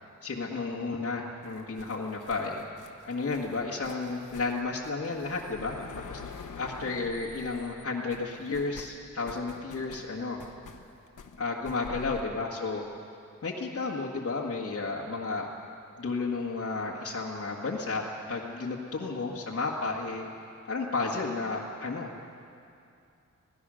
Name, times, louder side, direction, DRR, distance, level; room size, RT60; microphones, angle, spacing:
voice 1, 0.2-2.6 3.0-5.8 6.1-6.2 6.6-10.4 11.4-12.8 13.4-15.5 16.0-20.3 20.7-22.1, left 3 dB, 50° left, -4 dB, 1.7 m, -32 dB
sound 1, 1.4-7.8 8.1-12.2, left 5 dB, 80° left, 1.2 m, -47 dB
26.5 x 17.0 x 6.4 m, 2.5 s
wide cardioid pair, 175°, 31 cm